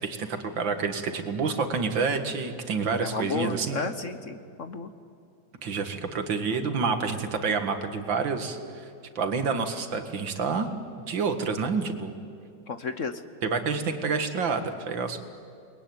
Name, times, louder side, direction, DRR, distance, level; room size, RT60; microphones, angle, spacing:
voice 1, 0.0-3.8 5.6-8.9 9.2-10.7 11.1-12.1 13.4-15.2, right 5 dB, 85° right, 7 dB, 2.5 m, -28 dB
voice 2, 3.0-4.9 6.5-6.6 12.7-13.2, left 4 dB, 50° left, 10 dB, 1.1 m, -33 dB
29.0 x 21.5 x 9.5 m, 2.4 s
omnidirectional pair, 2.0 m